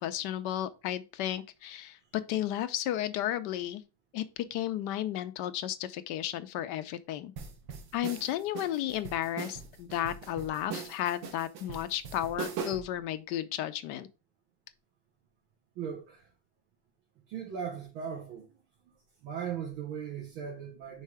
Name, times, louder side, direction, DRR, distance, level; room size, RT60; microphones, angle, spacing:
voice 1, 0.0-3.8 4.1-7.3 7.9-14.1, left 12 dB, 75° left, 1.1 m, -33 dB
sound 1, 7.4-13.0, right 6 dB, 70° right, 1.7 m, -40 dB
voice 2, 15.8-16.3 17.3-18.6 19.2-21.0, right 7 dB, 90° right, 2.0 m, -38 dB
5.5 x 4.1 x 4.7 m
omnidirectional pair, 2.1 m